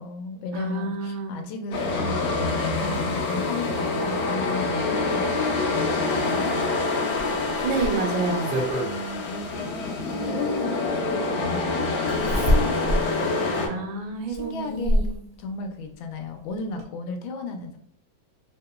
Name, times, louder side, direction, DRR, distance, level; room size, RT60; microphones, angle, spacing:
voice 1, 0.0-2.2 2.5-6.6 8.8-13.1 13.5-13.9 14.3-15.1 15.4-17.8, left 3 dB, 85° left, 5 dB, 1.3 m, -35 dB
voice 2, 0.5-1.4 7.6-8.6 13.6-15.2, right 4 dB, 80° right, 3 dB, 1.4 m, -29 dB
sound 1, 1.7-13.7, left 3 dB, 65° left, 0.9 m, -26 dB
Zipper (clothing), 7.1-8.9 10.4-10.5 12.1-13.1 13.5-13.6 14.3-15.2 16.4-16.5 16.8-16.9, equal, 55° right, 0.8 m, -25 dB
3.5 x 2.8 x 2.3 m, 0.62 s
omnidirectional pair, 2.1 m